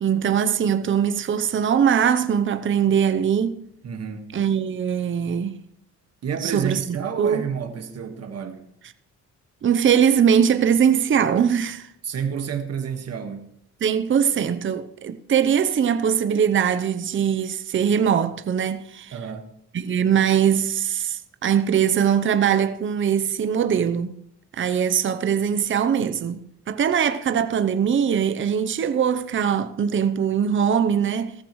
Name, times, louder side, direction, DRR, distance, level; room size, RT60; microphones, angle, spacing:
voice 1, 0.0-3.6 4.3-5.6 6.4-7.4 9.6-11.9 13.8-19.1 19.7-24.2 24.5-31.3, right 8 dB, 40° right, 0.8 m, -21 dB
voice 2, 3.8-4.3 6.2-8.7 12.0-13.5 19.1-19.5, right 7 dB, 55° right, 1.7 m, -30 dB
16.5 x 14.5 x 3.2 m
cardioid pair, 90°, 30 cm